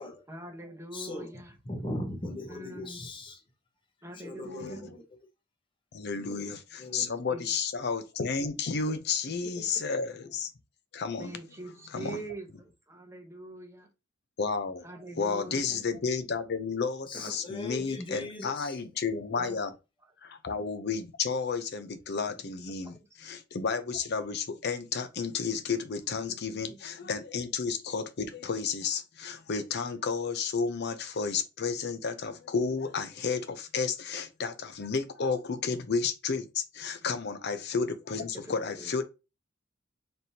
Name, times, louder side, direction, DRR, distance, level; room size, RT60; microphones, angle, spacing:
voice 1, 0.3-1.6 2.5-3.1 4.0-4.9 7.3-7.5 8.9-9.0 9.4-9.7 11.2-13.9 14.8-15.8 17.2-17.4 19.4-19.6 20.9-21.0 22.8-23.1 26.3-27.1 37.1-37.2 38.1-38.9, right 1 dB, 15° right, 0.9 m, -44 dB
voice 2, 0.9-1.3 1.7-3.4 4.1-5.0 6.2-6.5 6.8-7.2 17.1-18.8, left 1 dB, 25° left, 0.9 m, -39 dB
voice 3, 4.5-5.0 5.9-10.5 10.9-11.4 11.9-12.2 14.4-14.9 15.2-19.7 20.2-39.0, left 5 dB, 60° left, 0.6 m, -32 dB
4.2 x 3.4 x 2.8 m
head